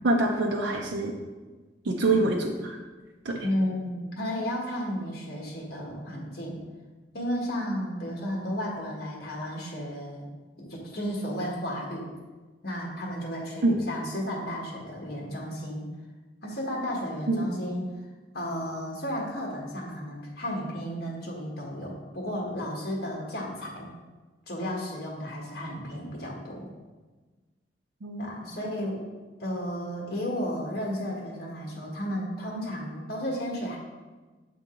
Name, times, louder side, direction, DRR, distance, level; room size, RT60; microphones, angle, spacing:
voice 1, 0.0-1.1 1.8-2.8 3.2-3.5 13.6-13.8 17.3-17.5 28.0-28.3, right 2 dB, 80° right, 0 dB, 0.6 m, -25 dB
voice 2, 3.4-6.6 7.1-10.2 10.6-12.1 12.6-15.9 16.4-17.9 18.3-23.9 24.5-26.7 28.2-29.0 29.4-33.8, equal, 60° left, -2 dB, 1.4 m, -33 dB
7.8 x 3.8 x 3.7 m, 1.3 s
head